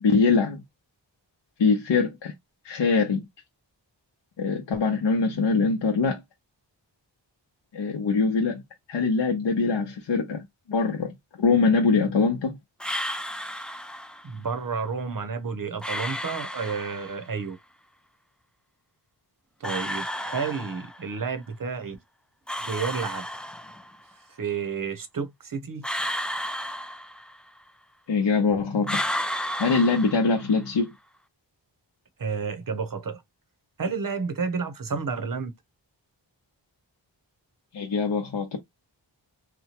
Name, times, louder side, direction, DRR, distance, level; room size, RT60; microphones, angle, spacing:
voice 1, 0.0-0.6 1.6-2.3 2.6-3.3 4.4-6.2 7.7-8.6 8.9-12.6 28.1-29.0 29.6-30.9 37.7-38.6, left 4 dB, 70° left, 0.7 m, -23 dB
sound 1, 12.8-14.3 15.8-17.3 19.6-21.2 22.5-24.0 25.8-27.6 28.8-30.7, equal, ahead, 0.3 m, -32 dB
voice 2, 14.2-17.6 19.6-22.0 22.7-23.2 24.4-25.9 32.2-33.2 33.8-35.5, right 5 dB, 45° right, 0.7 m, -31 dB
2.9 x 2.1 x 2.8 m
wide cardioid pair, 55°, 45 cm